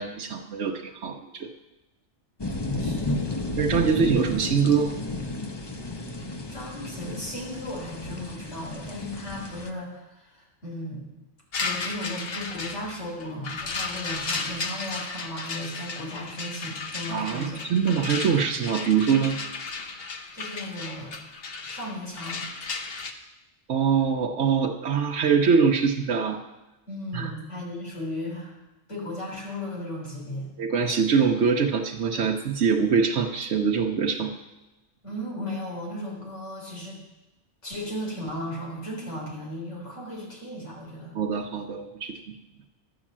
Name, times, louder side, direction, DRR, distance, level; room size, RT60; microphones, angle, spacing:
voice 1, 0.0-1.5 3.6-4.9 17.1-19.4 23.7-26.4 27.1-27.3 30.6-34.4 41.1-42.4, right 6 dB, 75° right, 0 dB, 1.1 m, -24 dB
sound 1, 2.4-9.7, left 2 dB, 25° left, 0.8 m, -32 dB
voice 2, 2.8-3.6 6.5-11.1 11.6-17.7 20.3-21.1 21.6-22.4 26.9-28.5 28.9-30.5 35.0-37.0 37.6-41.2, left 1 dB, 80° left, -3 dB, 4.0 m, -36 dB
sound 2, 11.5-23.1, left 4 dB, 55° left, 1.2 m, -34 dB
11.5 x 8.1 x 7.3 m, 1.0 s
omnidirectional pair, 1.2 m